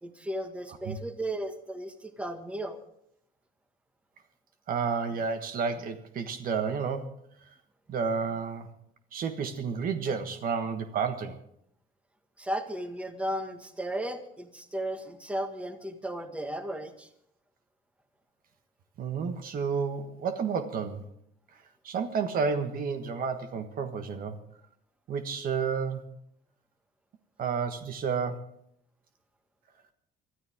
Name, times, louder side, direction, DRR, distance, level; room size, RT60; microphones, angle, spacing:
voice 1, 0.0-2.8 12.4-17.1, right 1 dB, 5° right, 7 dB, 1.6 m, -35 dB
voice 2, 4.7-7.2 7.5-7.6 7.9-8.7 9.1-11.4 19.0-21.0 21.8-24.4 25.1-26.0 27.4-28.5, right 5 dB, 55° right, 8 dB, 1.4 m, -31 dB
24.0 x 13.0 x 3.6 m, 0.71 s
cardioid pair, 110°, 17 cm